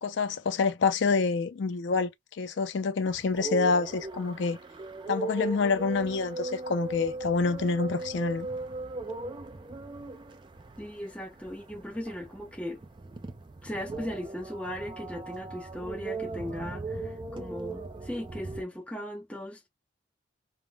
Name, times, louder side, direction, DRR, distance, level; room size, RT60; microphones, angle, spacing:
voice 1, 0.0-2.1 2.4-4.6 5.1-8.5, left 4 dB, 65° left, 0.4 m, -27 dB
sound 1, 3.1-18.6, right 3 dB, 25° right, 0.3 m, -38 dB
voice 2, 10.8-12.8 13.6-19.7, equal, 5° left, 0.7 m, -38 dB
3.3 x 2.0 x 2.2 m
head